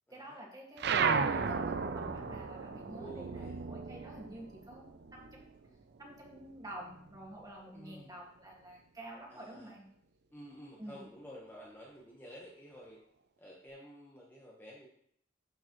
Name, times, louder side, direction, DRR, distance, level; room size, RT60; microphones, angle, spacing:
voice 1, 0.1-5.4 6.0-9.8 10.8-11.0, right 1 dB, 20° right, -2 dB, 1.8 m, -49 dB
sound 1, 0.8-5.7 6.0-7.4, right 5 dB, 60° right, 0.5 m, -34 dB
voice 2, 2.9-3.6 5.6-5.8 7.7-8.2 9.3-9.7 10.3-13.0 13.4-14.9, equal, 10° left, -4 dB, 1.1 m, -51 dB
12.0 x 4.7 x 3.0 m, 0.68 s
head